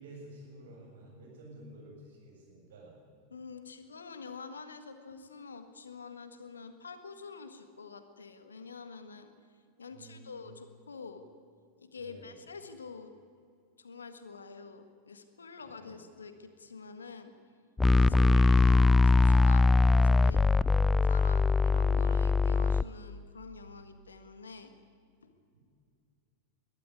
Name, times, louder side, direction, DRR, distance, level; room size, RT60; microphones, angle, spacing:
voice 1, 0.0-3.0 9.9-10.4 12.0-12.4 15.6-16.0 18.0-18.5, right 2 dB, 60° right, -1 dB, 7.2 m, -51 dB
voice 2, 3.3-9.3 9.8-11.2 11.8-13.1 13.8-17.3 17.9-20.4 21.0-24.7 25.2-25.3, left 5 dB, 70° left, 9 dB, 1.6 m, -47 dB
sound 1, 17.8-22.8, left 3 dB, 10° left, 0.4 m, -22 dB
21.0 x 13.0 x 9.8 m, 2.4 s
figure-of-eight pair, 90°, 0 cm